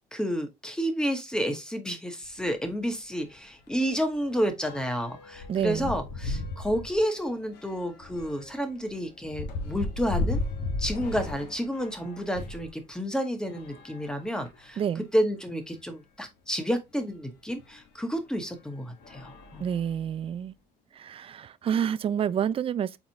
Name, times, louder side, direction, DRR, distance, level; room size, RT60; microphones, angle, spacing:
voice 1, 0.1-10.4 10.8-14.8 15.1-19.6, equal, 5° left, 1.1 m, -30 dB
sound 1, 2.2-2.4 2.8-3.0 3.2-12.7 13.4-14.8 15.5-15.6 15.8-15.9 17.6-17.7 18.3-18.6 19.0-20.3, left 2 dB, 85° left, 1.2 m, -36 dB
voice 2, 5.5-5.9 14.8-15.0 19.6-20.5 20.9-23.0, right 8 dB, 35° right, 0.3 m, -28 dB
4.6 x 3.9 x 2.7 m
cardioid pair, 110°, 17 cm